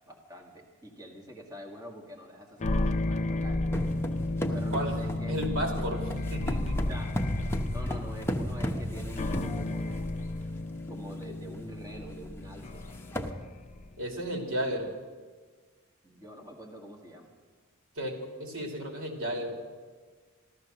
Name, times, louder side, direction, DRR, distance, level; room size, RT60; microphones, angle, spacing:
voice 1, 0.1-3.9 4.5-5.4 6.8-7.2 7.7-10.1 10.9-12.8 16.0-17.3, equal, 15° right, -1 dB, 1.9 m, -45 dB
sound 1, 2.6-14.0, left 2 dB, 35° left, 0.5 m, -33 dB
sound 2, 3.7-10.2 10.9-11.0 11.3-11.5 11.9-12.0 12.6-12.7 12.9-13.3, equal, 10° left, 0.9 m, -35 dB
voice 2, 4.5-6.8 14.0-14.9 17.9-19.5, equal, 90° right, 1 dB, 2.8 m, -34 dB
14.0 x 13.0 x 6.6 m, 1.5 s
head